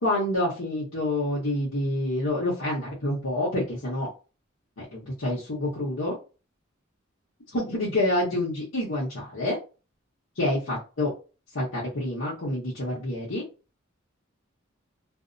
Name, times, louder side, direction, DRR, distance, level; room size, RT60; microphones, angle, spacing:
voice 1, 0.0-4.1 4.9-6.2 7.5-9.6 10.4-11.1 11.5-13.4, left 1 dB, 85° left, -8 dB, 1.0 m, -27 dB
2.6 x 2.1 x 2.5 m, 0.32 s
head